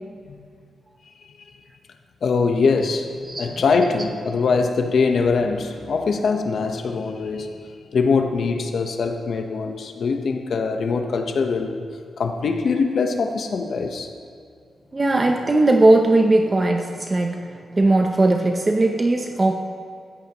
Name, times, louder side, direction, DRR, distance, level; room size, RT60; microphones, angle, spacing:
voice 1, 2.2-3.1 3.4-11.8 12.2-14.1, left 4 dB, 65° left, 5 dB, 1.1 m, -22 dB
voice 2, 3.3-3.6 14.9-19.6, right 2 dB, 25° right, 4 dB, 0.7 m, -18 dB
15.5 x 14.0 x 3.0 m, 2.3 s
wide cardioid pair, 105°, 0 cm